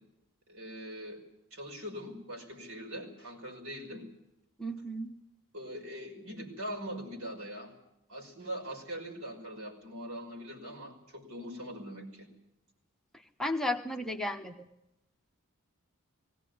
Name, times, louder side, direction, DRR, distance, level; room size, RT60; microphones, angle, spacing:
voice 1, 0.5-1.2 1.5-4.0 5.5-7.7 8.1-12.3, equal, 70° right, 1 dB, 5.5 m, -42 dB
voice 2, 4.6-5.1 13.1-14.7, left 1 dB, ahead, 2 dB, 1.1 m, -34 dB
19.5 x 17.0 x 9.5 m, 0.85 s
head